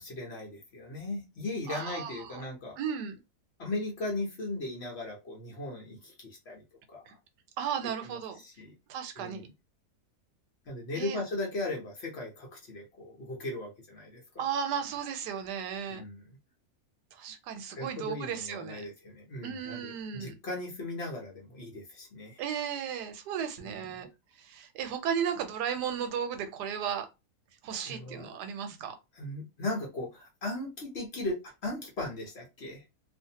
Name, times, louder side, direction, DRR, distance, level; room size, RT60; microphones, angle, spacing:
voice 1, 0.0-2.8 3.6-6.6 6.9-7.2 8.0-8.7 9.2-9.5 10.7-14.5 15.9-16.4 17.7-22.4 23.6-24.1 27.7-28.4 29.1-32.8, left 2 dB, 50° left, 1.0 m, -38 dB
voice 2, 1.7-2.4 2.8-3.2 7.1-7.2 7.6-8.4 8.9-9.5 10.9-11.2 14.4-16.0 17.1-18.8 19.4-20.3 22.4-24.1 24.4-27.1 27.6-29.0, right 8 dB, 85° right, 1.2 m, -35 dB
2.6 x 2.5 x 2.7 m
omnidirectional pair, 1.7 m